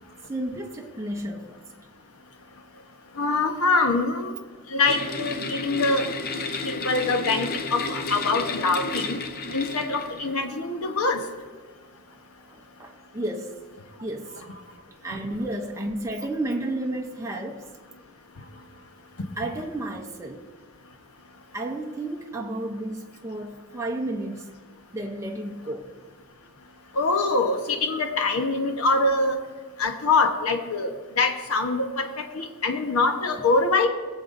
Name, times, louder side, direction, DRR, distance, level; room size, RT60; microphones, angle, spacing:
voice 1, 0.3-1.6 12.4-13.6 14.0-14.4 15.0-17.7 19.4-20.5 21.5-24.6 24.9-25.9, right 1 dB, 15° right, 1 dB, 0.6 m, -32 dB
voice 2, 3.2-4.3 4.7-6.0 6.6-9.2 9.5-11.2 27.0-29.4 29.8-33.9, left 3 dB, 80° left, 5 dB, 1.0 m, -24 dB
sound 1, 4.8-10.5, left 3 dB, 45° left, 0.6 m, -32 dB
20.0 x 6.9 x 2.6 m, 1.5 s
head